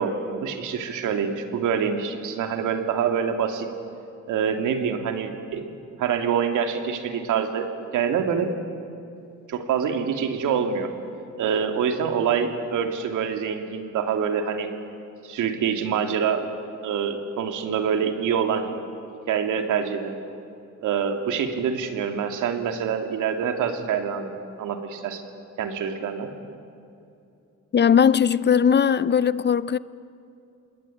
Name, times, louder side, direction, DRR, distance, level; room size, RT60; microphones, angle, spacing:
voice 1, 0.0-3.7 4.3-5.6 6.0-7.7 7.9-8.5 9.5-10.9 11.4-14.7 15.2-16.5 16.8-18.8 19.3-20.2 20.8-25.2 25.6-26.3, right 7 dB, 80° right, 2.7 m, -26 dB
voice 2, 27.7-29.8, left 7 dB, 35° left, 0.7 m, -19 dB
27.5 x 21.0 x 8.7 m
cardioid pair, 90°, 30 cm